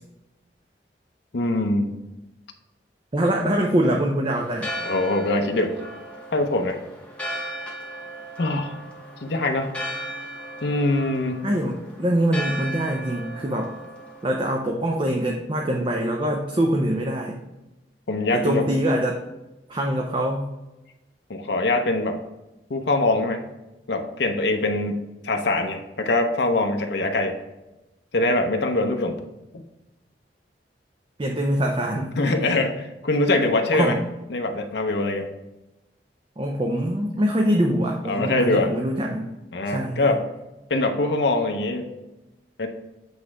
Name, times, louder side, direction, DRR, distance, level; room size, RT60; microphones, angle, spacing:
voice 1, 1.3-1.9 4.8-5.7 6.3-6.8 8.4-8.7 9.2-9.8 10.6-11.4 18.1-18.7 21.3-22.2 22.7-23.4 23.9-25.0 25.2-27.4 28.1-29.2 29.5-29.6 32.1-34.0 34.3-35.3 38.1-38.7 39.5-40.2 40.7-41.9 42.6-42.7, left 2 dB, 70° left, 4 dB, 0.7 m, -23 dB
voice 2, 3.1-4.7 11.4-13.7 14.2-17.4 18.3-19.2 19.7-20.5 31.2-32.1 33.7-34.0 36.4-39.3 39.7-40.1, right 1 dB, 30° right, 1 dB, 0.6 m, -24 dB
Church bell, 4.3-14.5, equal, 5° left, 0.9 m, -36 dB
8.1 x 3.2 x 4.7 m, 0.99 s
head